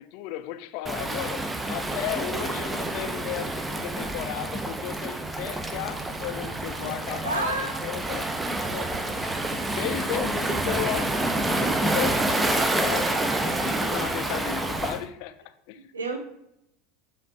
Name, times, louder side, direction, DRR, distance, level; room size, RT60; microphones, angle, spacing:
voice 1, 0.0-8.3 8.7-15.8, left 13 dB, 55° left, 0.4 m, -35 dB
Waves surf, 0.9-15.0, right 2 dB, 10° right, 0.5 m, -28 dB
voice 2, 7.2-7.7 15.9-16.2, right 3 dB, 80° right, 0.6 m, -29 dB
5.2 x 2.5 x 4.1 m
figure-of-eight pair, 75°, 0 cm